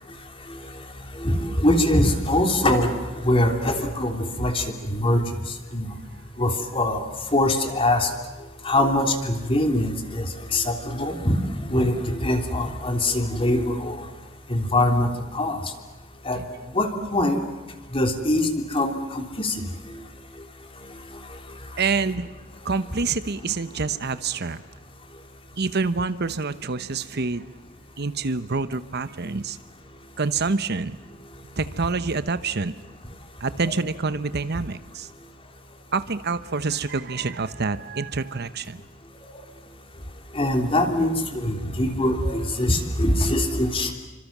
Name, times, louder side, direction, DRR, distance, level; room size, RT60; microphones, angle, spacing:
voice 1, 1.2-2.9 3.2-5.2 5.7-5.9 6.4-7.0 7.3-8.1 8.6-10.2 10.5-11.4 11.7-12.0 12.2-14.0 14.5-15.1 15.3-15.6 16.2-16.4 16.7-17.4 17.9-19.5 33.6-33.7 40.3-43.9, left 1 dB, 25° left, 5 dB, 3.2 m, -22 dB
voice 2, 21.8-22.3 22.6-24.6 25.6-27.5 28.0-29.6 30.2-31.0 31.6-32.7 33.4-35.1 35.9-38.8, right 4 dB, 55° right, 13 dB, 1.0 m, -27 dB
29.0 x 25.5 x 7.4 m, 1.3 s
head